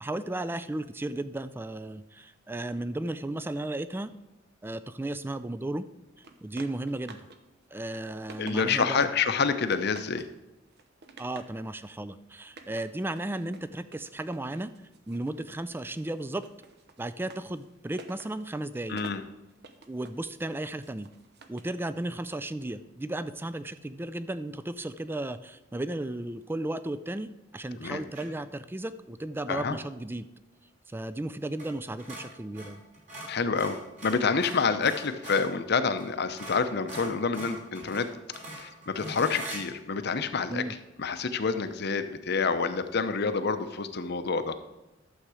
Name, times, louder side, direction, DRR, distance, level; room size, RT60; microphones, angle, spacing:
voice 1, 0.0-4.1 4.6-5.9 6.4-7.2 7.7-9.1 11.2-14.7 15.1-16.5 17.0-19.0 19.9-21.1 21.5-30.3 30.9-32.8 40.5-40.8, right 1 dB, 10° right, 13 dB, 0.3 m, -34 dB
sound 1, 6.2-7.4 7.7-9.0 9.4-10.3 10.7-11.6 12.4-15.4 15.7-21.8, right 3 dB, 60° right, 0.9 m, -51 dB
voice 2, 8.4-10.3 18.9-19.2 27.7-28.0 29.5-29.8 33.3-38.1 38.5-40.6 41.0-44.6, left 5 dB, 55° left, 10 dB, 0.7 m, -28 dB
sound 2, 28.1-28.4 31.5-31.7 32.0-35.5 36.0-36.1 36.4-39.6, right 1 dB, 40° right, 3.0 m, -42 dB
12.0 x 7.2 x 4.9 m, 0.98 s
head